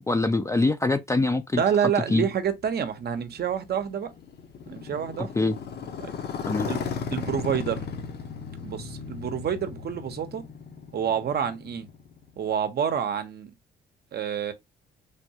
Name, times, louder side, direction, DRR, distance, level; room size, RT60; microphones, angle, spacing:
voice 1, 0.1-1.6 2.1-2.3 5.4-5.6 6.5-6.7, left 2 dB, 15° left, 0.4 m, -23 dB
voice 2, 1.6-4.1 4.7-5.3 6.0-6.1 6.7-7.8 8.6-10.5 10.9-11.9 12.4-13.5 14.1-14.5, right 8 dB, 55° right, 0.7 m, -28 dB
Motorcycle, 2.5-12.4, left 6 dB, 55° left, 0.7 m, -36 dB
3.4 x 2.2 x 2.7 m
cardioid pair, 90°, 20 cm